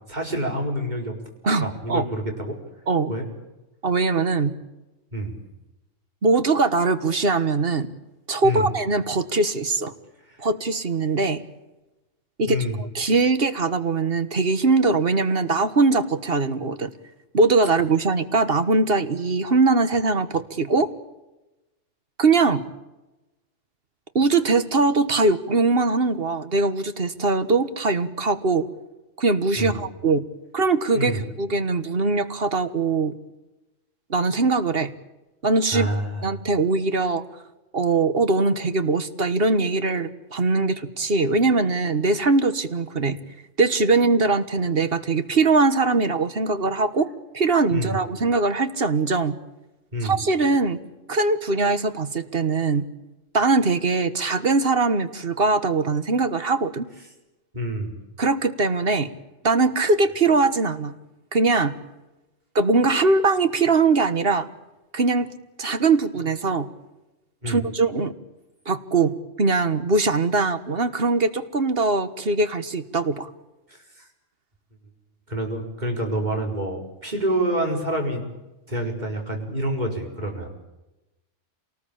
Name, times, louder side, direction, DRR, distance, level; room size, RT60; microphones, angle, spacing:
voice 1, 0.1-1.1 1.6-2.6 3.1-3.3 5.1-5.4 8.4-8.7 10.4-10.5 12.5-12.8 29.6-29.8 30.9-31.2 35.7-36.3 47.7-48.0 49.9-50.2 57.5-58.0 67.4-67.6 73.7-74.1 75.3-78.3 78.7-80.5, right 1 dB, 35° right, 2 dB, 5.0 m, -27 dB
voice 2, 1.4-2.0 2.9-3.1 3.8-4.5 6.2-7.9 8.3-9.9 10.4-11.4 12.4-16.9 17.3-20.9 22.2-22.6 24.1-28.7 29.2-30.2 30.5-33.1 34.1-34.9 35.4-35.9 36.2-37.2 37.7-43.2 43.6-49.4 50.0-50.8 51.1-52.9 53.3-56.9 58.2-59.1 59.4-60.9 61.3-61.7 62.5-64.5 64.9-65.3 65.6-66.7 67.5-68.1 68.6-73.3, right 3 dB, 50° right, 11 dB, 1.6 m, -21 dB
27.5 x 19.5 x 8.7 m, 1.0 s
omnidirectional pair, 1.3 m